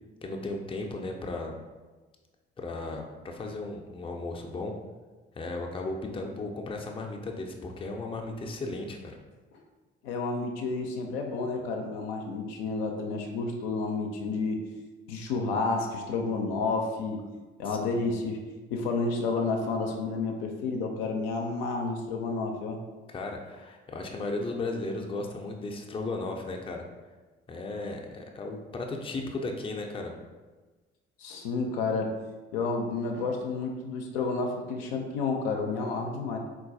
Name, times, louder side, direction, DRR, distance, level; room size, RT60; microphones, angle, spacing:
voice 1, 0.2-1.5 2.6-4.7 5.3-9.2 17.6-18.2 23.1-26.8 27.5-30.1, left 2 dB, 15° left, 1 dB, 0.5 m, -35 dB
voice 2, 10.0-14.6 15.1-17.2 17.6-18.4 18.7-22.8 31.2-32.1 32.5-36.4, left 3 dB, 70° left, 2 dB, 0.5 m, -30 dB
3.8 x 2.4 x 2.6 m, 1.3 s
figure-of-eight pair, 40°, 31 cm